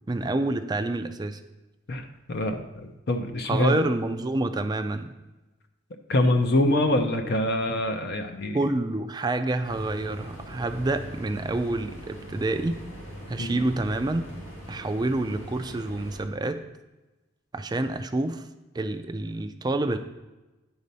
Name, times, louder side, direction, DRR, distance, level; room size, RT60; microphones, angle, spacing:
voice 1, 0.1-1.4 3.5-5.1 8.5-12.8 13.3-14.3 14.7-16.6 17.5-18.4 18.7-20.0, right 2 dB, 20° right, 8 dB, 0.4 m, -28 dB
voice 2, 1.9-3.8 6.1-8.6 13.4-13.6, left 1 dB, 55° left, 5 dB, 0.6 m, -25 dB
sound 1, 9.6-16.2, equal, 90° left, 2.0 m, -41 dB
9.6 x 4.1 x 5.4 m, 1.1 s
head